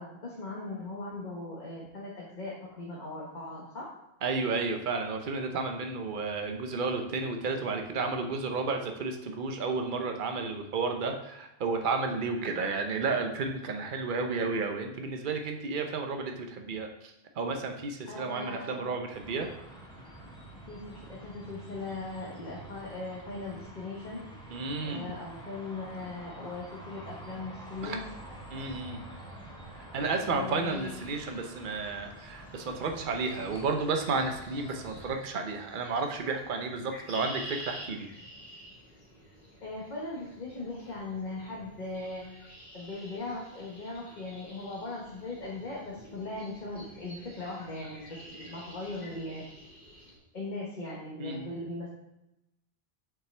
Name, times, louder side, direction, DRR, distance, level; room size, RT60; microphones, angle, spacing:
voice 1, 0.0-3.9 18.1-18.8 20.7-24.2 24.8-28.0 30.2-30.9 39.6-49.4 50.3-51.9, left 2 dB, 45° left, -4 dB, 1.4 m, -39 dB
voice 2, 4.2-19.5 24.5-25.0 27.8-28.0 28.5-29.0 29.9-38.1 51.2-51.5, right 4 dB, 55° right, 4 dB, 0.9 m, -32 dB
sound 1, 19.1-35.2, right 1 dB, 5° left, 1.5 m, -47 dB
sound 2, 30.6-50.2, equal, 75° left, 2.4 m, -50 dB
7.3 x 5.8 x 3.3 m, 0.90 s
omnidirectional pair, 1.1 m